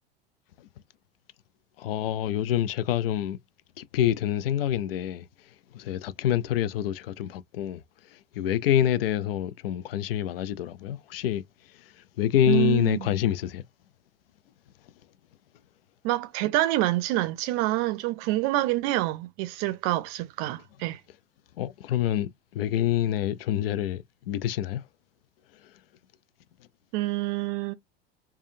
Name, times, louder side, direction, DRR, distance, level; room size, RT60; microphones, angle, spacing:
voice 1, 1.8-3.4 3.8-5.3 5.7-7.8 8.1-11.4 12.2-13.6 21.6-24.8, left 11 dB, 70° left, 0.4 m, -26 dB
voice 2, 12.4-13.1 16.0-21.0 26.9-27.7, right 16 dB, 50° right, 0.5 m, -27 dB
3.4 x 2.2 x 2.6 m
hypercardioid pair, 85°, 30 cm